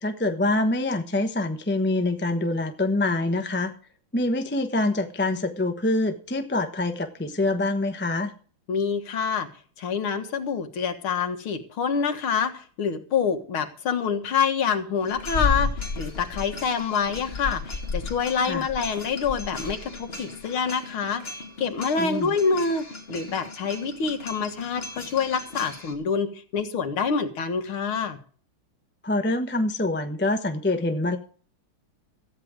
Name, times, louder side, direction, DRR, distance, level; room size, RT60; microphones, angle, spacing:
voice 1, 0.0-3.7 4.1-8.3 18.4-18.6 22.0-22.3 29.0-31.2, left 2 dB, 10° left, 7 dB, 0.6 m, -25 dB
voice 2, 8.7-9.5 9.8-15.7 16.0-21.2 21.6-28.2, left 6 dB, 80° left, 7 dB, 2.5 m, -26 dB
sound 1, 15.0-25.9, left 3 dB, 30° left, 2.5 m, -34 dB
14.5 x 9.5 x 5.0 m, 0.42 s
omnidirectional pair, 2.3 m